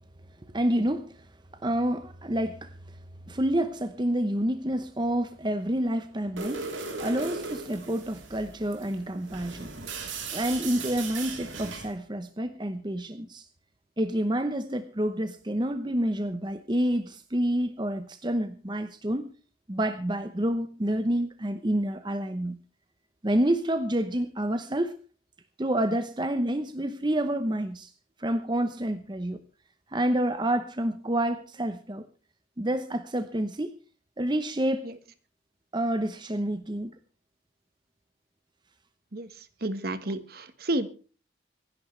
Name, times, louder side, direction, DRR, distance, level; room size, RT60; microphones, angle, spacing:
voice 1, 0.4-1.3 1.6-3.0 3.3-6.7 7.0-9.7 10.3-13.5 14.0-19.3 19.7-22.6 23.2-24.9 25.6-27.9 28.2-29.4 29.9-32.1 32.6-33.7 34.2-34.9 35.7-37.0, right 1 dB, 25° right, 0.9 m, -28 dB
sound 1, 6.4-12.0, right 4 dB, 85° right, 3.6 m, -38 dB
voice 2, 39.1-40.9, right 1 dB, 50° right, 1.4 m, -31 dB
25.5 x 11.0 x 3.3 m
head